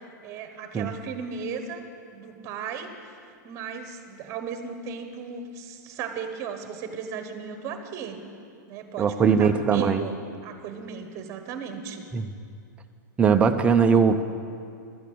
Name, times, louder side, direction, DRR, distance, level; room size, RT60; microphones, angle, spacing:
voice 1, 0.2-1.9 2.1-3.2 3.4-8.2 8.7-10.2 10.4-12.0, right 6 dB, 30° right, 7 dB, 1.2 m, -36 dB
voice 2, 9.0-10.0 12.1-12.3 13.2-14.2, right 6 dB, 10° right, 7 dB, 0.5 m, -20 dB
11.5 x 8.4 x 7.7 m, 2.4 s
supercardioid pair, 150°, 10 cm